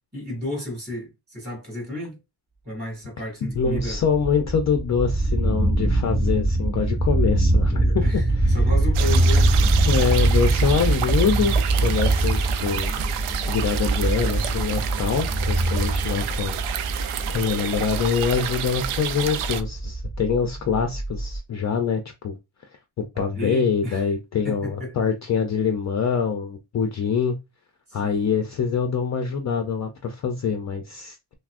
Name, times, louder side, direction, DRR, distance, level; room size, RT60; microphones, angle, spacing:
voice 1, 0.1-2.2 2.6-4.0 8.0-9.7 10.0-10.3 23.1-24.1 24.4-24.9 27.9-28.4, left 1 dB, 20° right, 2.2 m, -33 dB
voice 2, 3.4-8.1 9.9-12.9 13.5-16.6 17.3-22.4 23.0-27.4 27.9-31.2, left 6 dB, 35° left, 0.4 m, -24 dB
sound 1, 3.5-21.4, right 2 dB, 35° right, 1.4 m, -23 dB
sound 2, 8.9-19.6, right 9 dB, 85° right, 0.6 m, -30 dB
5.9 x 2.0 x 2.4 m
cardioid pair, 160°, 49 cm